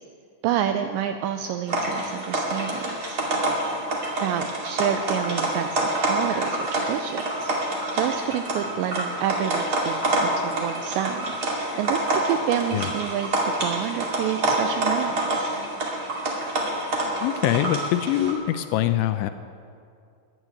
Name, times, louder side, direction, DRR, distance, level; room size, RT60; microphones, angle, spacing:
voice 1, 0.4-3.2 4.2-7.5 7.9-15.5, right 10 dB, 85° right, 8 dB, 2.5 m, -29 dB
sound 1, 1.7-18.3, right 1 dB, 40° right, 2.0 m, -27 dB
voice 2, 17.2-19.3, left 12 dB, 85° left, 10 dB, 2.8 m, -23 dB
14.0 x 11.0 x 8.9 m, 2.4 s
omnidirectional pair, 5.7 m